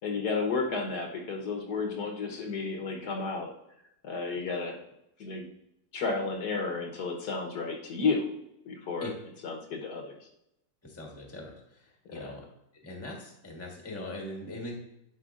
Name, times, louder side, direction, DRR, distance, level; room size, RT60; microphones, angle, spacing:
voice 1, 0.0-3.5 4.0-4.8 5.2-5.5 5.9-8.3 8.6-9.1 9.4-10.3 12.1-12.3, left 4 dB, 65° left, 1 dB, 1.5 m, -32 dB
voice 2, 10.8-12.4 12.8-14.7, left 1 dB, 10° left, 0 dB, 1.1 m, -41 dB
11.0 x 4.8 x 2.4 m, 0.83 s
omnidirectional pair, 1.9 m